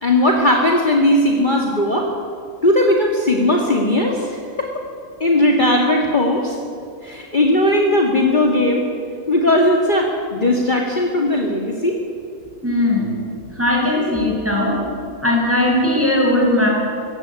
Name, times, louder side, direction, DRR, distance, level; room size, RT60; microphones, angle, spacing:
voice 1, 0.0-2.1 2.6-4.7 5.2-6.6 7.0-8.9 9.3-12.0, left 1 dB, 35° left, 0 dB, 2.3 m, -17 dB
voice 2, 12.6-13.2 13.6-14.8 15.2-16.7, left 1 dB, 10° right, -3 dB, 7.0 m, -18 dB
22.5 x 17.0 x 9.8 m, 2.5 s
omnidirectional pair, 1.5 m